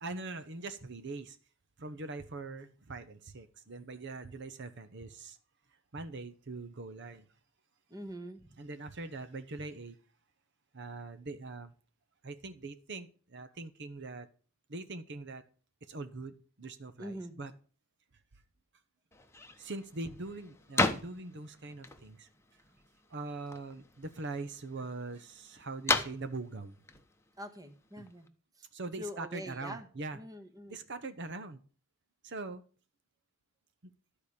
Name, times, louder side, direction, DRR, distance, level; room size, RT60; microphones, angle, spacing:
voice 1, 0.0-1.4 1.8-5.4 5.9-7.3 8.6-10.0 10.7-11.7 12.2-14.3 14.7-15.4 15.9-17.5 19.6-22.3 23.1-26.8 28.0-28.1 28.7-30.2 30.7-31.6 32.2-32.6, right 3 dB, 60° right, 10 dB, 0.9 m, -42 dB
voice 2, 7.9-8.5 17.0-17.4 27.4-28.3 28.6-28.7 29.0-29.9 30.1-30.8, equal, 20° right, 8 dB, 1.3 m, -44 dB
sound 1, 19.1-28.3, left 3 dB, 15° left, 1.0 m, -38 dB
13.0 x 4.9 x 8.6 m, 0.40 s
head